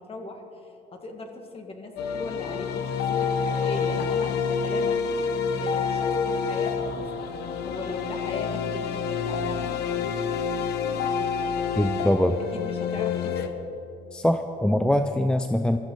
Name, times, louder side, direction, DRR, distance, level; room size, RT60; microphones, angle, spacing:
voice 1, 0.0-11.8 12.5-13.6, left 2 dB, 35° left, 3 dB, 2.1 m, -39 dB
sound 1, 2.0-13.5, left 6 dB, 75° left, 1.1 m, -28 dB
voice 2, 11.8-12.4 14.1-15.8, left 1 dB, 5° left, 7 dB, 0.5 m, -23 dB
21.5 x 14.0 x 4.0 m, 2.9 s
cardioid pair, 110°, 17 cm